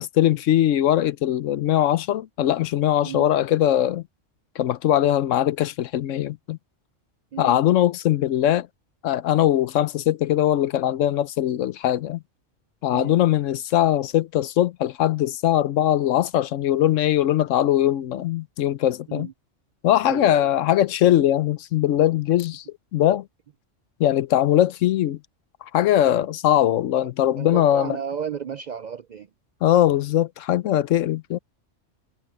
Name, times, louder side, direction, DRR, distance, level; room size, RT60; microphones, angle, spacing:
voice 1, 0.0-4.0 4.6-6.6 7.4-8.7 9.0-12.2 12.8-19.3 19.8-22.6 22.9-23.3 24.0-25.2 25.7-28.0 29.6-31.4, left 12 dB, 85° left, 1.0 m, -21 dB
voice 2, 7.3-7.6 12.9-13.2 19.1-19.3 20.1-20.5 27.0-29.3, right 8 dB, 65° right, 0.4 m, -33 dB
omnidirectional pair, 1.3 m